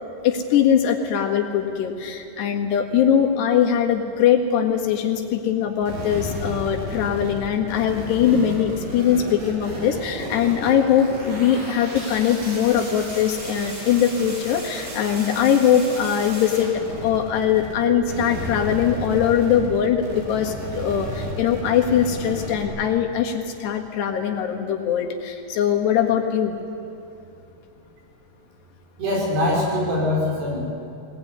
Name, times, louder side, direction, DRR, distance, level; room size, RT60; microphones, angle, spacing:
voice 1, 0.2-16.7 17.0-26.6, left 8 dB, 90° left, 2 dB, 3.9 m, -21 dB
sound 1, 5.8-17.8 18.0-22.6, equal, 55° right, 6.0 m, -33 dB
voice 2, 29.0-30.6, left 1 dB, 80° right, -3 dB, 7.6 m, -22 dB
21.0 x 19.5 x 9.7 m, 2.7 s
omnidirectional pair, 4.7 m